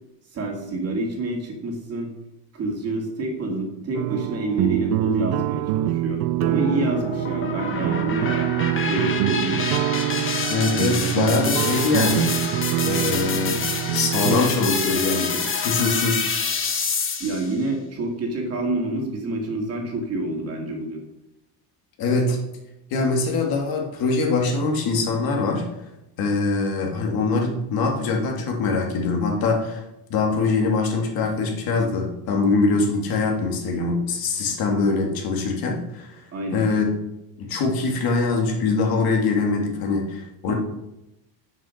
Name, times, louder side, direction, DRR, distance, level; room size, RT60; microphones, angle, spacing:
voice 1, 0.3-2.1 2.5-8.5 8.9-9.7 17.2-21.0 36.3-36.7 40.5-40.6, right 2 dB, 35° right, 1 dB, 2.3 m, -28 dB
sound 1, 3.9-14.4, right 15 dB, 55° right, 0.5 m, -25 dB
sound 2, 6.4-17.5, left 5 dB, 25° left, 1.4 m, -27 dB
voice 2, 10.5-12.3 12.8-13.6 13.9-16.2 22.0-22.4 22.9-25.7 26.2-29.8 30.1-36.2 36.5-36.9 37.4-40.5, left 3 dB, 50° left, 1 dB, 2.2 m, -23 dB
7.4 x 6.6 x 6.4 m, 0.89 s
cardioid pair, 135°, 44 cm